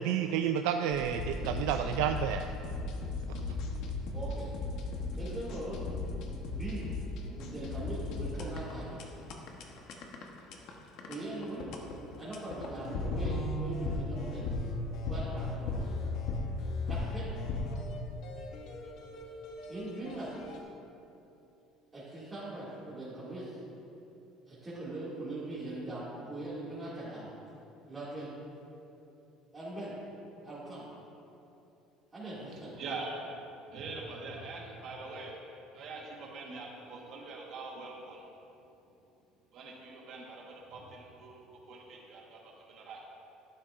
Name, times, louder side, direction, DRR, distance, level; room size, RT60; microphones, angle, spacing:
voice 1, 0.0-2.5 3.5-3.6, right 9 dB, 85° right, 6 dB, 0.3 m, -30 dB
sound 1, 0.9-20.6, left 2 dB, 55° left, 1.0 m, -37 dB
voice 2, 4.1-4.6 5.1-5.8 6.5-6.9 7.3-9.0 9.6-9.8 11.1-11.7 12.2-14.5 15.1-15.9 16.9-17.3 19.7-20.6 21.9-23.6 24.5-27.3 27.9-28.3 29.5-29.9 30.4-30.9 32.1-32.7, right 2 dB, 15° right, -11 dB, 2.3 m, -41 dB
voice 3, 32.8-33.3 33.7-35.4 35.7-38.3 39.5-43.0, right 3 dB, 45° right, -2 dB, 1.4 m, -43 dB
12.0 x 11.5 x 2.5 m, 2.9 s
cardioid pair, 170°, 0 cm